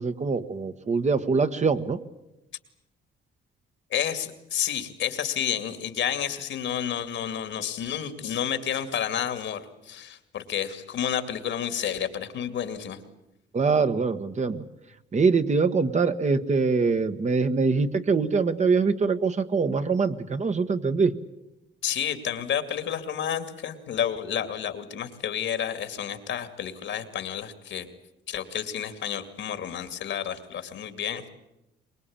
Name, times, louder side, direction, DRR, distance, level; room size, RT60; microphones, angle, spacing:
voice 1, 0.0-2.0 13.5-14.6 15.1-21.1, right 4 dB, 35° right, 9 dB, 1.4 m, -23 dB
voice 2, 3.9-13.0 21.8-27.9 28.3-31.3, left 9 dB, 70° left, 9 dB, 2.5 m, -30 dB
23.5 x 21.0 x 8.8 m, 0.94 s
cardioid pair, 90°, 20 cm